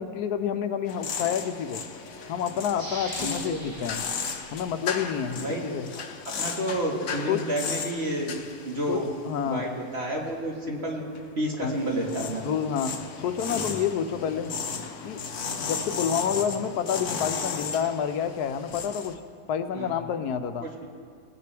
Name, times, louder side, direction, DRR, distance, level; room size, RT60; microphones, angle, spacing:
voice 1, 0.0-1.8 2.3-4.0 4.5-5.9 7.3-7.4 8.9-9.0 9.2-9.7 11.6-11.8 12.4-12.9 13.2-14.5 15.0-15.2 15.6-19.2 19.5-20.7, left 8 dB, 85° left, 9 dB, 1.2 m, -29 dB
sound 1, 0.9-10.4 10.7-19.1, left 5 dB, 65° left, 1.1 m, -35 dB
sound 2, 2.7-5.4 5.9-6.0, equal, 65° right, 3.0 m, -42 dB
voice 2, 3.2-3.6 5.3-5.8 6.4-8.4 8.7-9.1 9.4-11.0 11.4-12.5 19.7-19.9 20.6-20.7, right 1 dB, 45° right, -2 dB, 1.9 m, -30 dB
20.0 x 9.7 x 3.4 m, 2.2 s
omnidirectional pair, 1.6 m